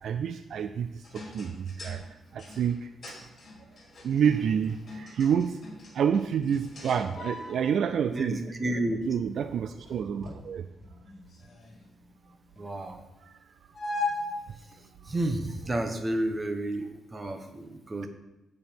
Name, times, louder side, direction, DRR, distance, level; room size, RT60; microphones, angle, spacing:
voice 1, 0.0-2.9 4.0-5.6 5.9-8.4 9.1-10.7 13.2-13.3, right 7 dB, 60° right, 10 dB, 0.4 m, -28 dB
sound 1, 1.0-7.9 8.9-12.8 13.7-14.4 15.3-15.6 15.9-16.4, left 3 dB, 35° left, 2.8 m, -39 dB
voice 2, 8.1-9.0 12.6-13.0 15.1-18.1, right 1 dB, 20° right, 6 dB, 1.1 m, -31 dB
16.0 x 5.4 x 4.6 m, 0.95 s
cardioid pair, 155°, 0 cm